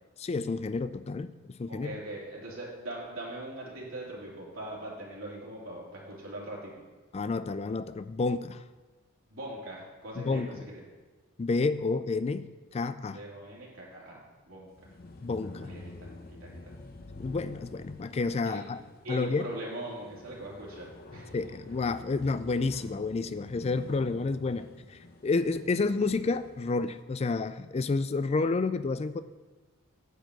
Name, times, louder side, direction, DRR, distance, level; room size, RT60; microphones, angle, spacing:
voice 1, 0.2-1.3 1.6-1.9 7.1-8.6 10.2-10.6 11.4-13.2 15.2-15.7 17.2-18.8 19.1-19.5 21.3-29.2, left 3 dB, 30° left, 13 dB, 0.3 m, -30 dB
voice 2, 1.7-6.8 9.3-10.8 13.1-14.7 15.6-16.1 16.4-16.8 18.4-18.6 19.0-21.5 24.5-24.6, right 1 dB, 70° right, -4 dB, 3.2 m, -41 dB
sound 1, 14.7-26.7, left 2 dB, 45° left, 0.8 m, -48 dB
10.0 x 4.5 x 7.8 m, 1.3 s
head